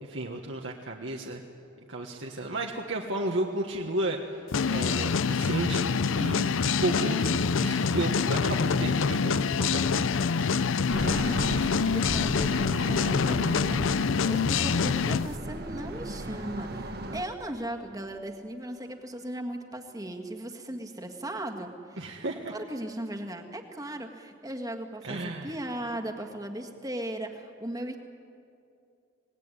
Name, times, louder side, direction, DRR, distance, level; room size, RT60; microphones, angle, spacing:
voice 1, 0.0-1.4 1.9-5.9 6.1-10.1 22.0-22.5 25.0-25.5, right 2 dB, 65° right, 0 dB, 1.5 m, -33 dB
sound 1, 4.5-15.3, left 5 dB, 80° left, 0.5 m, -26 dB
sound 2, 10.9-17.2, right 1 dB, 50° right, 1.3 m, -37 dB
voice 2, 11.1-22.0 22.5-28.0, right 1 dB, 20° right, 3 dB, 1.7 m, -37 dB
25.5 x 20.0 x 9.9 m, 2.6 s
head